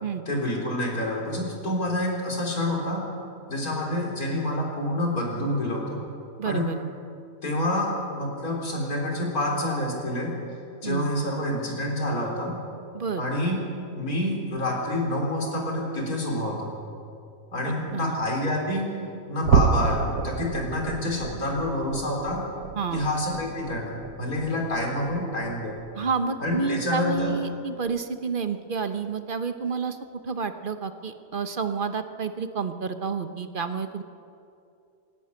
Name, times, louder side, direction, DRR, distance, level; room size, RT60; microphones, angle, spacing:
voice 1, 0.3-3.1 3.5-6.0 6.5-6.7 7.4-10.3 10.8-12.6 13.2-13.6 14.0-16.7 17.5-19.0 19.3-22.4 22.9-25.8 26.4-27.4, left 1 dB, 65° left, -1 dB, 4.3 m, -28 dB
voice 2, 6.4-6.8 10.8-11.1 12.9-13.2 17.6-18.2 22.7-23.0 25.9-30.0 30.2-34.0, right 5 dB, 40° right, 9 dB, 0.9 m, -29 dB
sound 1, 19.4-26.1 26.5-26.7 27.2-27.3 27.9-28.0, right 6 dB, 65° right, 1.4 m, -29 dB
26.5 x 11.0 x 9.7 m, 2.6 s
omnidirectional pair, 1.7 m